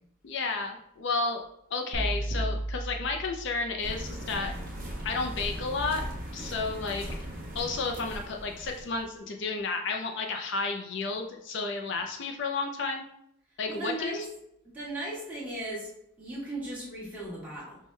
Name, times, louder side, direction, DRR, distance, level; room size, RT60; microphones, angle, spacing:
voice 1, 0.2-1.4 1.7-4.5 5.0-6.0 6.3-7.1 7.5-13.1 13.6-14.2, left 3 dB, 60° left, 3 dB, 0.4 m, -32 dB
sound 1, 1.9-4.2, right 1 dB, 25° left, 0.8 m, -34 dB
sound 2, 3.8-9.0, equal, 45° right, 1.2 m, -38 dB
voice 2, 13.7-14.3 14.6-15.9 16.2-17.8, right 1 dB, 5° right, -6 dB, 1.3 m, -37 dB
5.3 x 2.2 x 3.1 m, 0.75 s
head